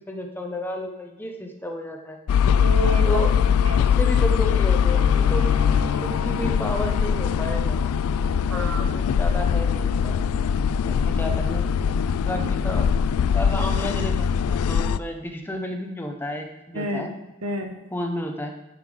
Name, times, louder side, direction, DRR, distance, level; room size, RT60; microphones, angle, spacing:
voice 1, 0.1-2.2 3.1-3.3 3.8-5.4 6.0-7.8 8.5-10.2 10.8-11.6 12.2-12.9 13.3-14.1 14.5-17.1 17.9-18.5, equal, 10° left, 3 dB, 0.8 m, -32 dB
sound 1, 2.3-15.0, left 7 dB, 80° left, 0.3 m, -21 dB
voice 2, 2.5-3.2 3.5-3.9 8.5-8.9 11.9-12.0 12.4-12.5 16.7-17.1 17.4-17.8, right 2 dB, 80° right, 5 dB, 1.2 m, -30 dB
Bowed string instrument, 4.8-10.1, left 4 dB, 20° right, 3.2 m, -36 dB
9.7 x 5.7 x 5.0 m, 1.0 s
head